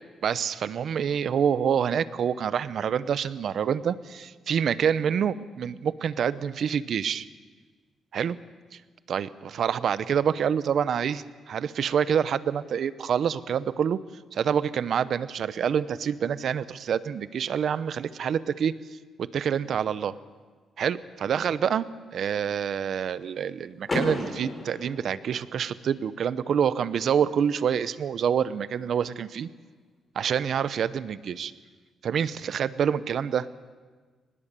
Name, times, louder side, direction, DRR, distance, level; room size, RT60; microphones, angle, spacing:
voice 1, 0.2-7.3 8.1-8.4 9.1-14.0 14.3-18.7 19.2-20.2 20.8-29.5 30.2-31.5 32.0-33.5, right 8 dB, 60° right, 15 dB, 0.7 m, -27 dB
Car / Door, 23.8-25.8, left 2 dB, 25° left, 4.8 m, -33 dB
24.0 x 20.0 x 6.9 m, 1.4 s
cardioid pair, 125°, 0 cm